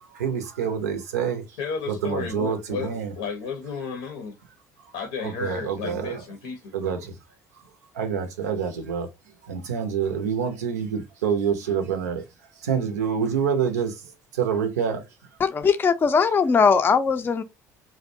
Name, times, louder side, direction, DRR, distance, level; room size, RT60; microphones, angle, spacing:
voice 1, 0.1-1.4 1.9-3.1 5.2-6.2 6.7-7.2 7.9-9.1 9.4-12.2 12.6-14.0 14.3-15.0, right 7 dB, 80° right, 0.5 m, -27 dB
voice 2, 1.6-4.4 4.9-7.0, left 5 dB, 75° left, 0.6 m, -33 dB
voice 3, 15.4-17.4, left 5 dB, 25° left, 0.4 m, -20 dB
2.5 x 2.1 x 2.5 m
hypercardioid pair, 60°, 9 cm